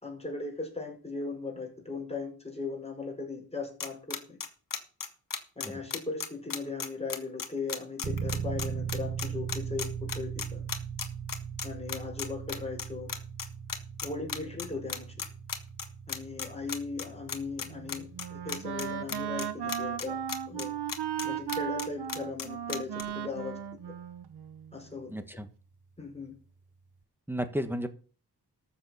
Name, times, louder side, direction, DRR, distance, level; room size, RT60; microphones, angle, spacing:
voice 1, 0.0-4.4 5.6-10.6 11.6-13.1 14.0-15.1 16.1-20.2 20.5-20.7 21.2-23.6 24.7-25.1 26.0-26.3, left 4 dB, 15° left, 0 dB, 4.9 m, -38 dB
sound 1, 3.8-23.0, left 6 dB, 55° left, 1.6 m, -35 dB
sound 2, 8.0-24.8, right 7 dB, 50° right, 1.2 m, -40 dB
Wind instrument woodwind instrument, 17.7-24.8, right 9 dB, 75° right, 0.8 m, -36 dB
voice 2, 25.1-25.5 27.3-27.9, equal, 5° right, 9 dB, 1.5 m, -33 dB
13.5 x 7.3 x 5.7 m, 0.39 s
wide cardioid pair, 115°, 39 cm